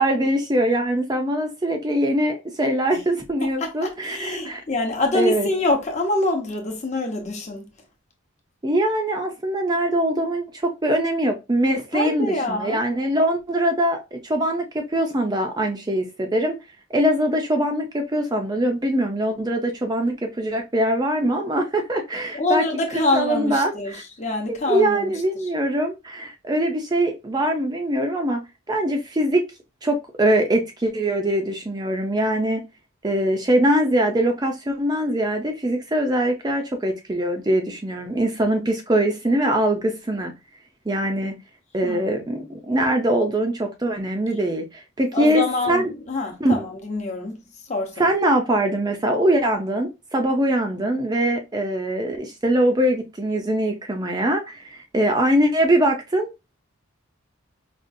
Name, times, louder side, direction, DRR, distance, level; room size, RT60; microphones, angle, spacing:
voice 1, 0.0-4.6 5.1-5.5 8.6-16.6 16.9-22.6 23.1-24.0 24.7-29.5 29.8-32.6 33.0-40.3 40.9-41.3 41.7-45.9 46.4-46.6 48.0-56.3, right 1 dB, 20° right, 0.4 m, -22 dB
voice 2, 3.4-7.7 11.9-12.8 22.3-25.1 41.8-42.1 42.3-42.6 45.1-47.4 47.7-48.1, left 2 dB, 35° left, 0.8 m, -25 dB
5.1 x 2.4 x 2.6 m
head